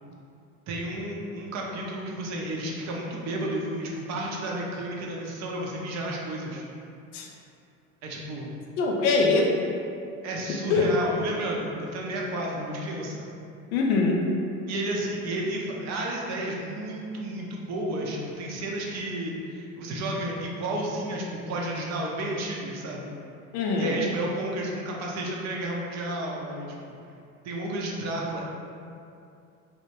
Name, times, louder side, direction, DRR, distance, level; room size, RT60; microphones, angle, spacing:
voice 1, 0.7-6.6 8.0-8.6 10.2-13.3 14.7-23.1 23.8-26.7 27.4-28.4, right 1 dB, 40° right, -2 dB, 0.5 m, -32 dB
voice 2, 8.8-9.5 10.7-10.9 13.7-14.3 23.5-24.0, left 3 dB, 75° left, 0 dB, 0.5 m, -23 dB
2.1 x 2.0 x 2.9 m, 2.6 s
hypercardioid pair, 75°, 43 cm